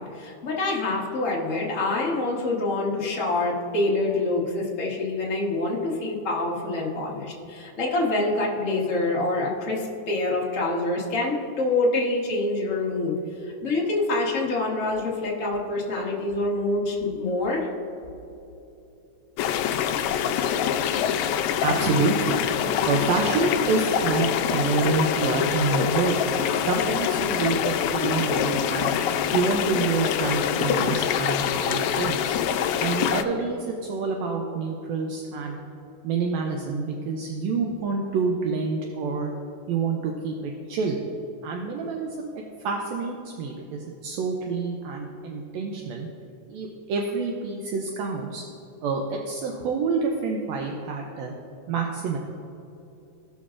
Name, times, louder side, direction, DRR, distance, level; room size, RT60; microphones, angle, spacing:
voice 1, 0.0-13.1 13.4-17.7, left 2 dB, 60° left, -3 dB, 0.8 m, -26 dB
sound 1, 19.4-33.2, left 9 dB, 80° left, 1.7 m, -25 dB
voice 2, 21.6-22.4 22.8-26.2 26.6-29.0 29.3-32.3 32.8-35.6 36.0-39.3 39.7-41.0 41.4-42.3 42.6-46.1 46.5-48.4 48.8-51.3 51.7-52.2, right 4 dB, 75° right, 1 dB, 1.7 m, -27 dB
16.5 x 6.2 x 2.5 m, 2.9 s
omnidirectional pair, 3.4 m